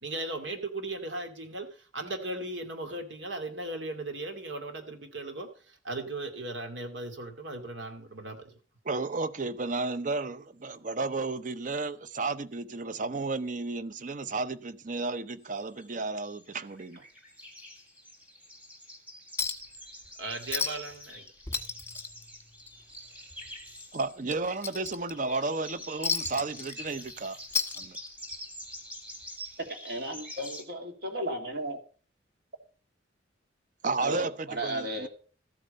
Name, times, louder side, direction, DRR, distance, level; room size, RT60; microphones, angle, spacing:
voice 1, 0.0-1.7 1.9-8.4 20.2-21.2, right 2 dB, 85° right, 2.4 m, -37 dB
voice 2, 8.9-17.0 23.9-27.4 27.8-28.0 33.8-34.3 34.6-35.1, right 3 dB, 45° right, 0.7 m, -33 dB
sound 1, 15.4-24.2 24.5-30.6, equal, 10° right, 2.4 m, -47 dB
Chink clink, 19.4-19.8 20.1-20.2 20.5-21.0 21.3-23.0 23.3-23.5 23.9-25.4 26.0-27.1 27.4-28.4 29.5-29.6, left 5 dB, 15° left, 1.2 m, -33 dB
voice 3, 29.8-31.8 34.0-35.1, right 1 dB, 60° right, 2.5 m, -34 dB
13.5 x 8.8 x 5.3 m
head